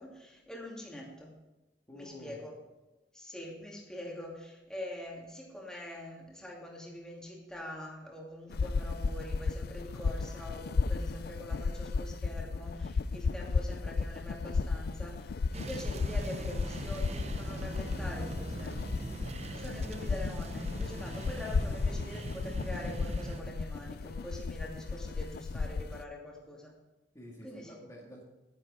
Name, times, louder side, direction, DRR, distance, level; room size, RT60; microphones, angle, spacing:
voice 1, 0.0-1.4 1.9-2.5 3.1-19.0 19.6-26.7 27.4-27.8, left 1 dB, 5° left, -3 dB, 2.6 m, -44 dB
voice 2, 1.9-2.4 27.1-28.2, left 1 dB, 20° left, -5 dB, 2.1 m, -49 dB
sound 1, 8.5-26.0, left 4 dB, 60° left, 0.4 m, -34 dB
sound 2, 15.5-23.4, right 2 dB, 40° right, 0.7 m, -41 dB
11.0 x 10.0 x 4.3 m, 1.1 s
head